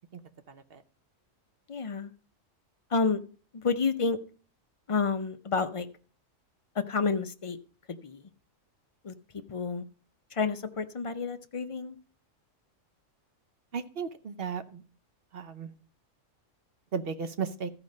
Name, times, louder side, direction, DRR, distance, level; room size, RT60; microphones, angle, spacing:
voice 1, 0.5-0.8 13.7-14.8 15.3-15.7 16.9-17.7, right 6 dB, 55° right, 0.9 m, -35 dB
voice 2, 1.7-2.1 2.9-3.2 3.5-4.2 4.9-5.9 6.9-7.6 7.9-8.3 9.0-9.1 9.5-9.8 10.3-12.0, left 4 dB, 40° left, 0.4 m, -29 dB
14.0 x 4.9 x 5.3 m
omnidirectional pair, 1.4 m